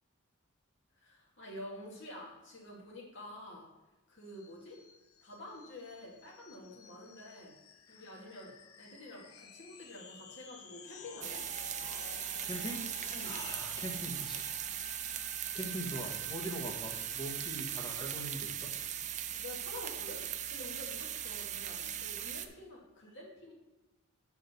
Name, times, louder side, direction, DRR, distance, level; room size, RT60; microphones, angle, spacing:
voice 1, 0.9-3.7 4.1-4.8 5.2-7.5 7.9-11.5 13.1-13.4 19.3-23.5, left 1 dB, 55° left, -3 dB, 2.1 m, -48 dB
sound 1, 4.3-20.5, left 5 dB, 80° left, 0.8 m, -53 dB
sound 2, 11.2-22.5, right 10 dB, 35° right, 0.4 m, -39 dB
voice 2, 12.4-12.8 13.2-14.5 14.8-18.7, equal, 20° left, 0 dB, 1.4 m, -42 dB
6.3 x 4.8 x 6.6 m, 1.1 s
head